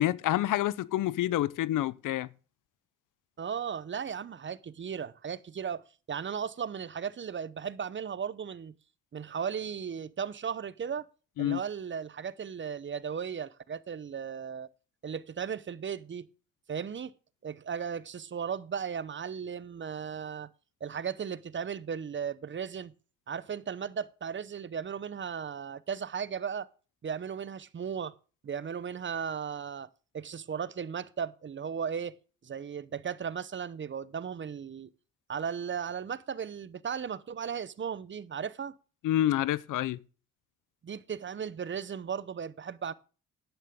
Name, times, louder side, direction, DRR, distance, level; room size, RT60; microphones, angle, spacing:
voice 1, 0.0-2.3 11.4-11.6 39.0-40.0, left 13 dB, 75° left, 0.7 m, -28 dB
voice 2, 3.4-8.7 9.1-11.1 11.4-14.7 15.0-16.3 16.7-17.1 17.4-20.5 20.8-22.9 23.3-26.7 27.0-28.1 28.4-29.9 30.1-32.1 32.4-34.9 35.3-38.7 40.8-42.9, right 7 dB, 35° right, 0.7 m, -36 dB
11.5 x 9.4 x 3.6 m
cardioid pair, 75°, 32 cm